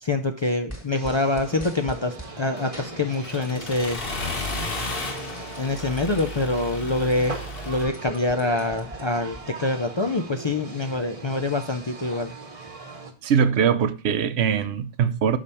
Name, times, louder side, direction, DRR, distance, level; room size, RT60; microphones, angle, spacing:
voice 1, 0.0-4.0 5.6-7.4 7.7-12.3, left 2 dB, 40° left, 0.4 m, -25 dB
sound 1, 0.7-2.4 2.7-3.9 4.2-6.2 6.7-6.8 7.0-9.4, right 1 dB, 15° left, 1.4 m, -43 dB
sound 2, 0.9-13.1, right 3 dB, 35° right, 1.1 m, -40 dB
Accelerating revving vroom, 2.6-7.8, left 2 dB, 60° left, 1.4 m, -33 dB
voice 2, 13.2-15.4, right 7 dB, 80° right, 0.9 m, -22 dB
6.6 x 5.1 x 4.1 m
omnidirectional pair, 1.1 m